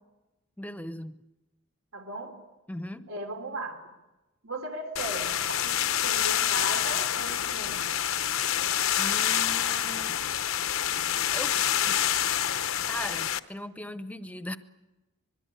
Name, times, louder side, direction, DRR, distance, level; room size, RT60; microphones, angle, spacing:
voice 1, 0.6-1.1 2.7-3.1 9.0-10.2 11.3-11.6 11.9-12.0 12.9-14.6, left 1 dB, 5° left, 11 dB, 0.8 m, -38 dB
voice 2, 1.9-2.4 3.1-3.8 4.4-7.9, right 1 dB, 80° right, 4 dB, 3.2 m, -37 dB
sound 1, 5.0-13.4, left 10 dB, 80° left, 0.9 m, -27 dB
25.0 x 22.0 x 8.3 m, 1.0 s
head